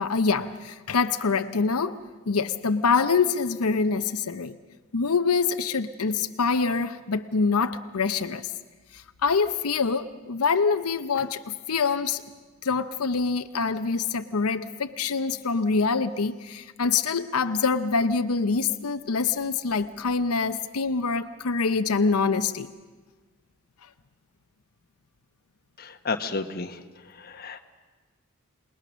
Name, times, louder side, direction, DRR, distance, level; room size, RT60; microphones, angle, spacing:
voice 1, 0.0-4.6 4.9-8.5 8.9-12.2 12.6-22.7, left 4 dB, 85° left, 9 dB, 0.7 m, -25 dB
voice 2, 25.8-26.7 27.4-27.6, left 4 dB, 45° left, 6 dB, 1.2 m, -31 dB
27.5 x 20.0 x 6.3 m, 1.3 s
head